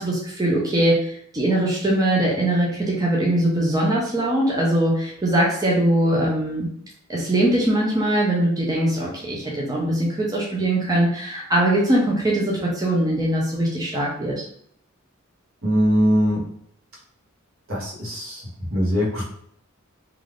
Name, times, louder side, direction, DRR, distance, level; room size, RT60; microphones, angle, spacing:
voice 1, 0.0-6.7 7.1-14.4, right 1 dB, 15° right, -4 dB, 0.4 m, -21 dB
voice 2, 15.6-16.4 17.7-18.4 18.7-19.2, equal, 65° right, -3 dB, 1.0 m, -21 dB
2.4 x 2.4 x 3.3 m, 0.67 s
head